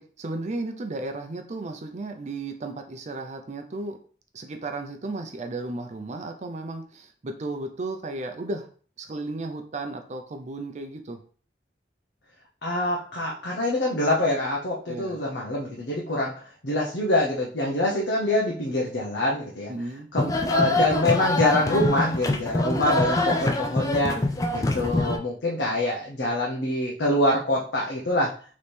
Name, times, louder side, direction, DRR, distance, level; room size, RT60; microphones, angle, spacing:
voice 1, 0.0-4.0 4.3-8.7 9.0-11.2 14.9-15.2 19.7-20.1, right 2 dB, 40° right, 5 dB, 0.5 m, -34 dB
voice 2, 12.6-16.3 16.6-19.7 20.1-24.2 24.5-28.3, left 1 dB, 70° left, -3 dB, 0.8 m, -25 dB
sound 1, 20.2-25.2, left 1 dB, 20° left, 0.4 m, -25 dB
3.3 x 3.1 x 4.3 m, 0.43 s
head